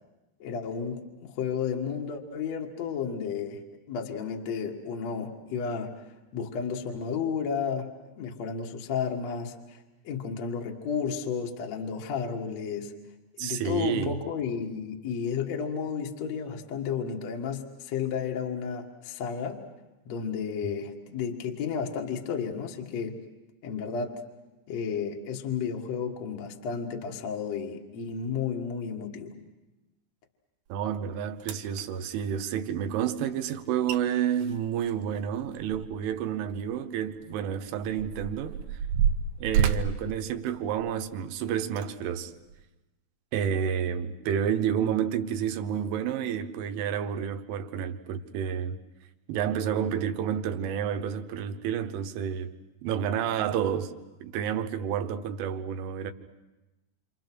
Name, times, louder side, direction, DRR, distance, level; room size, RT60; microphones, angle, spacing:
voice 1, 0.4-3.6 3.9-5.9 6.3-12.9 13.4-19.6 20.1-23.2 23.6-24.2 24.7-29.3, left 6 dB, 55° left, 1.9 m, -32 dB
voice 2, 13.4-14.2 30.7-38.6 39.4-42.3 43.3-48.8 49.3-52.5 52.8-53.9 54.2-56.1, right 8 dB, 90° right, 3.5 m, -30 dB
sound 1, 30.9-31.0 31.4-31.8 33.6-33.7 33.9-34.0 34.3-36.1 36.5-36.6 37.3-41.1 41.7-41.9 42.5-42.6, right 8 dB, 70° right, 2.7 m, -29 dB
28.0 x 27.0 x 6.2 m
omnidirectional pair, 5.4 m